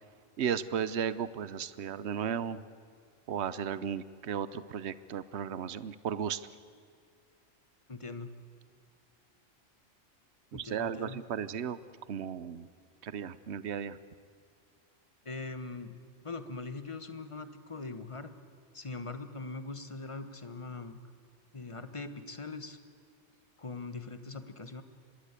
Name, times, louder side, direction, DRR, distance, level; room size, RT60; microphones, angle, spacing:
voice 1, 0.4-2.6 3.3-6.4 10.5-11.8 12.1-12.7 13.0-14.0, right 8 dB, 60° right, 15 dB, 1.1 m, -35 dB
voice 2, 7.9-8.3 10.5-11.2 15.2-18.3 18.7-21.0 21.5-22.8 23.6-24.8, left 3 dB, 25° left, 10 dB, 1.2 m, -41 dB
25.5 x 20.5 x 8.3 m, 2.2 s
omnidirectional pair, 1.3 m